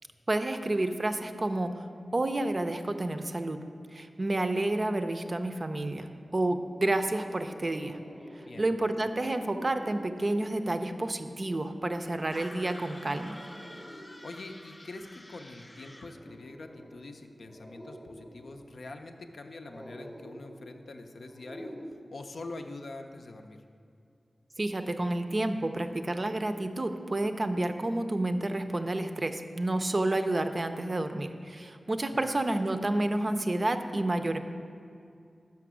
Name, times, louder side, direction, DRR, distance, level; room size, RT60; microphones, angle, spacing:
voice 1, 0.3-1.8 2.1-3.6 3.9-8.0 8.3-13.4 24.6-34.4, right 2 dB, 40° right, 8 dB, 0.4 m, -30 dB
sound 1, 5.9-21.9, equal, ahead, 0.6 m, -50 dB
sound 2, 12.3-16.2, left 1 dB, 35° left, 0.7 m, -49 dB
voice 2, 14.2-21.7 22.1-23.6 32.1-32.3, left 2 dB, 75° left, 5 dB, 0.5 m, -44 dB
5.9 x 5.8 x 6.1 m, 2.4 s
cardioid pair, 55°, 0 cm